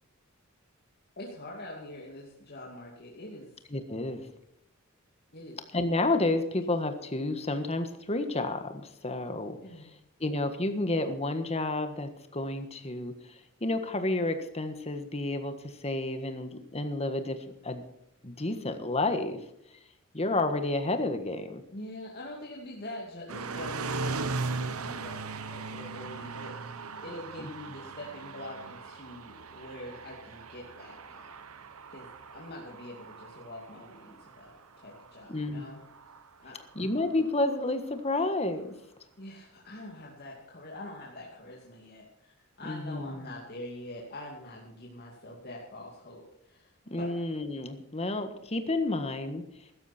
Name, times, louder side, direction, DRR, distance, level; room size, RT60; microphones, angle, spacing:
voice 1, 1.2-3.5 5.3-5.6 9.6-9.9 21.7-31.3 31.9-35.8 36.4-36.6 39.2-47.1, left 1 dB, 45° left, -3 dB, 2.6 m, -44 dB
voice 2, 3.7-4.3 5.7-9.9 10.2-17.4 17.6-17.8 18.2-19.4 20.1-21.6 27.4-27.8 35.3-35.7 36.7-38.7 42.6-43.3 46.9-49.4, left 2 dB, 30° left, 8 dB, 1.5 m, -31 dB
sound 1, 23.3-37.3, right 4 dB, 80° right, 1.0 m, -39 dB
15.5 x 13.0 x 4.4 m, 0.81 s
head